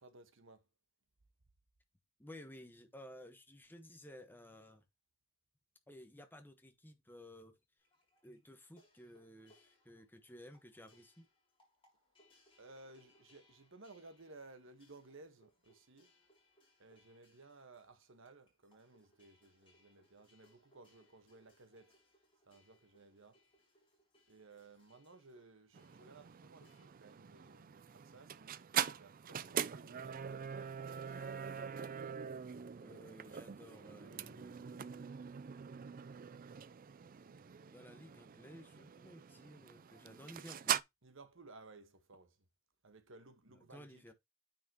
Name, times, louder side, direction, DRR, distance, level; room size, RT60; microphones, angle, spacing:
voice 1, 0.0-0.7 12.6-16.1 16.8-22.0 22.5-23.4 24.3-31.4 41.0-42.4 42.8-44.0, right 3 dB, 65° right, 1.3 m, -59 dB
voice 2, 2.2-4.8 5.9-7.6 8.2-11.3 32.8-35.1 37.7-40.8 43.5-44.1, left 1 dB, 10° left, 1.2 m, -55 dB
sound 1, 7.8-26.9, left 1 dB, 25° left, 5.9 m, -71 dB
sound 2, 25.7-40.8, right 8 dB, 45° right, 0.4 m, -43 dB
9.3 x 5.8 x 2.9 m
head